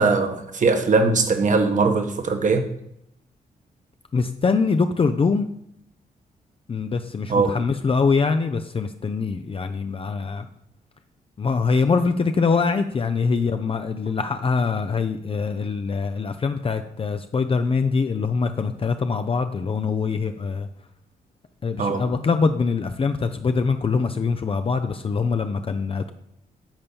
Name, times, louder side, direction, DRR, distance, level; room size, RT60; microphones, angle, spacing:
voice 1, 0.0-2.6 7.3-7.6 21.8-22.0, right 4 dB, 50° right, 5 dB, 1.4 m, -20 dB
voice 2, 4.1-5.5 6.7-10.5 11.4-20.7 21.6-26.1, left 4 dB, 35° left, 7 dB, 0.5 m, -23 dB
8.8 x 4.3 x 7.0 m, 0.78 s
cardioid pair, 90°, 16 cm